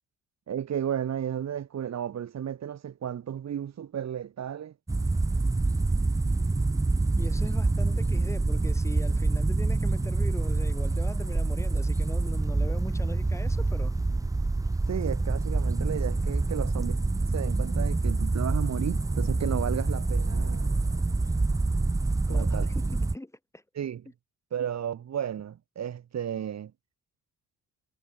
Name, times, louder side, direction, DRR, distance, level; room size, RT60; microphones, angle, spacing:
voice 1, 0.5-4.7 14.9-17.0 17.3-20.8 22.3-22.7 23.8-24.0 24.5-26.7, right 9 dB, 60° right, 7.2 m, -33 dB
sound 1, 4.9-23.1, right 3 dB, 10° right, 0.7 m, -26 dB
voice 2, 7.2-14.0 22.3-23.6, left 1 dB, 10° left, 4.4 m, -40 dB
cardioid pair, 90°, 30 cm